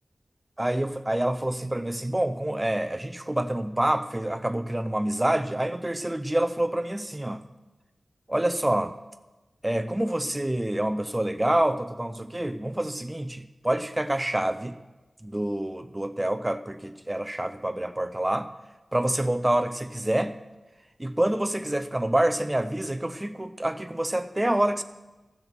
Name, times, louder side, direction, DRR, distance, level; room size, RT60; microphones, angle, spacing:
voice 1, 0.6-7.5 8.3-8.9 9.6-14.8 15.2-18.5 18.9-20.3 21.0-24.8, right 1 dB, 15° right, 9 dB, 0.7 m, -27 dB
15.0 x 7.6 x 5.9 m, 1.1 s
wide cardioid pair, 85°, 0 cm